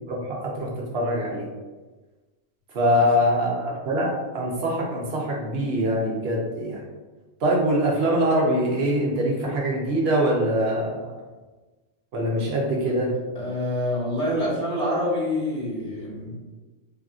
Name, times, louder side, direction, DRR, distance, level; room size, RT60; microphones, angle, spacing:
voice 1, 0.1-1.5 2.7-6.8 7.4-11.2 12.1-13.1, equal, 60° right, -2 dB, 0.8 m, -23 dB
voice 2, 13.3-16.3, left 1 dB, 40° right, -8 dB, 1.5 m, -26 dB
3.4 x 2.5 x 2.3 m, 1.3 s
omnidirectional pair, 1.3 m